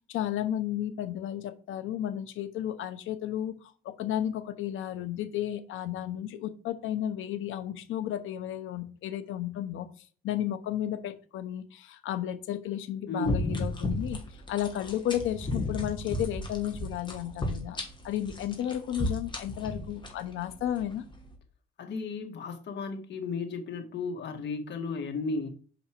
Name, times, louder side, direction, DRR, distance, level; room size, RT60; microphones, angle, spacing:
voice 1, 0.1-3.6 3.8-9.9 10.2-14.2 14.5-21.0, left 11 dB, 85° left, 10 dB, 1.0 m, -33 dB
voice 2, 13.1-13.4 21.8-25.5, left 4 dB, 65° left, 5 dB, 1.7 m, -34 dB
sound 1, 13.2-21.4, left 1 dB, 25° left, 2.1 m, -35 dB
6.3 x 5.2 x 4.6 m, 0.40 s
cardioid pair, 90°, 20 cm